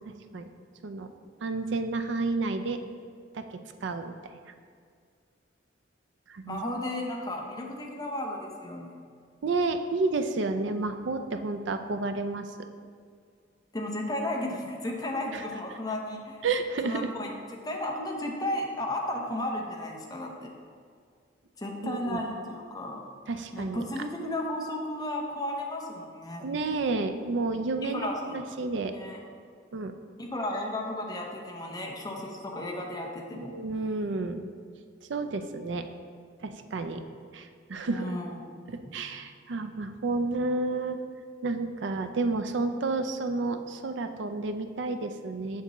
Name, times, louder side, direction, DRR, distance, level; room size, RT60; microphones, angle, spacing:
voice 1, 0.1-0.5 0.8-1.1 1.4-2.8 3.3-3.5 3.8-4.3 6.3-6.6 9.4-12.7 15.3-15.4 16.4-17.1 21.8-22.2 23.3-23.8 26.4-28.9 29.7-29.9 33.4-34.4 35.1-35.9 36.4-37.0 37.3-38.1 38.7-41.0 41.4-45.6, right 3 dB, 70° right, 8 dB, 0.4 m, -31 dB
voice 2, 6.5-9.0 13.7-16.5 16.8-17.3 17.6-20.5 21.6-23.0 23.5-26.5 27.8-28.4 28.9-29.2 30.2-33.6 37.9-38.5 38.8-38.9, left 1 dB, 20° left, 0 dB, 0.8 m, -34 dB
6.7 x 6.6 x 3.0 m, 2.1 s
head